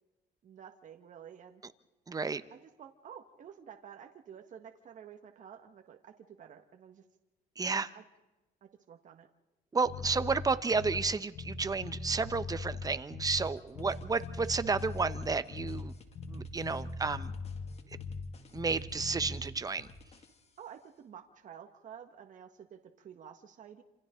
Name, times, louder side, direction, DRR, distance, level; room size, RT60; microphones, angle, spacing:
voice 1, 0.4-1.6 2.5-7.0 7.6-8.0 8.9-9.3 10.0-10.3 13.8-14.0 20.6-23.8, right 8 dB, 50° right, 5 dB, 1.6 m, -51 dB
voice 2, 2.1-2.4 7.6-7.9 9.7-15.9 16.3-17.3 18.5-19.9, right 4 dB, 20° right, 12 dB, 1.0 m, -32 dB
Bass guitar, 9.8-11.1 11.3-13.5 13.7-18.3 18.5-19.4, left 4 dB, 65° left, 7.7 m, -40 dB
sound 1, 13.4-20.8, left 3 dB, 40° left, 2.3 m, -56 dB
27.5 x 27.5 x 3.8 m, 1.1 s
cardioid pair, 110°, 17 cm